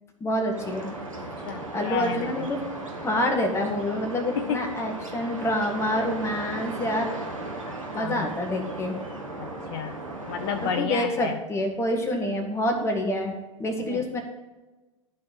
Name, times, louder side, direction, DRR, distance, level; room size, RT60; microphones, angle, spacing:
voice 1, 0.2-0.9 1.7-2.6 3.0-7.1 7.9-8.9 10.8-13.3 13.6-14.2, left 1 dB, 15° left, 3 dB, 1.7 m, -27 dB
sound 1, 0.5-10.8, right 2 dB, 85° right, 1.9 m, -36 dB
voice 2, 1.2-2.5 4.3-4.8 7.7-8.3 9.4-10.0 10.3-11.4 13.8-14.1, left 7 dB, 50° left, 8 dB, 0.7 m, -32 dB
12.0 x 4.6 x 7.6 m, 1.2 s
figure-of-eight pair, 85°, 17 cm